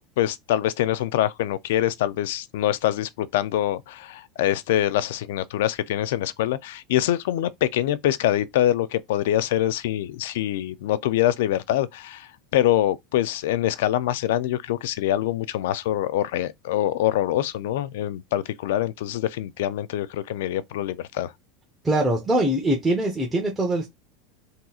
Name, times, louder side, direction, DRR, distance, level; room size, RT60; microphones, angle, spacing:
voice 1, 0.0-21.3, left 12 dB, 80° left, 0.3 m, -24 dB
voice 2, 21.8-23.9, right 1 dB, 10° right, 0.8 m, -22 dB
3.6 x 2.8 x 2.3 m
supercardioid pair, 130°, 0 cm